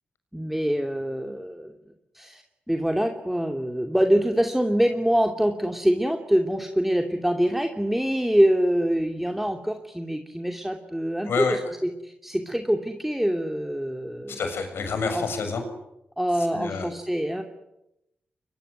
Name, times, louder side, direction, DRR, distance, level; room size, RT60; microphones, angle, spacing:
voice 1, 0.3-1.7 2.1-14.4 15.1-15.3 16.2-17.4, equal, 5° right, 4 dB, 2.8 m, -25 dB
voice 2, 11.3-11.6 14.3-15.6 16.5-16.9, left 5 dB, 75° left, 7 dB, 6.7 m, -28 dB
24.5 x 22.0 x 9.7 m, 0.87 s
cardioid pair, 55°, 4 cm